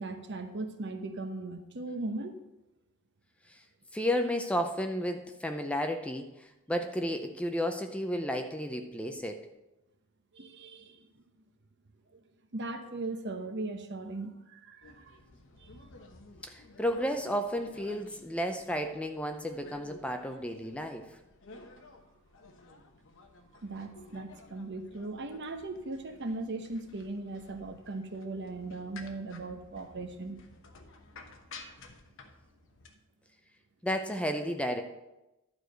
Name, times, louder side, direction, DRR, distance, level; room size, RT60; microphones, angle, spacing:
voice 1, 0.0-2.4 10.3-11.1 12.1-12.2 12.5-15.2 15.6-15.9 23.6-30.5, right 2 dB, 55° right, 7 dB, 0.9 m, -38 dB
voice 2, 3.9-9.5 16.4-21.1 33.8-34.8, equal, 5° left, 6 dB, 0.5 m, -32 dB
sound 1, 14.8-32.9, left 3 dB, 60° left, 1.0 m, -54 dB
11.5 x 4.7 x 6.6 m, 0.98 s
head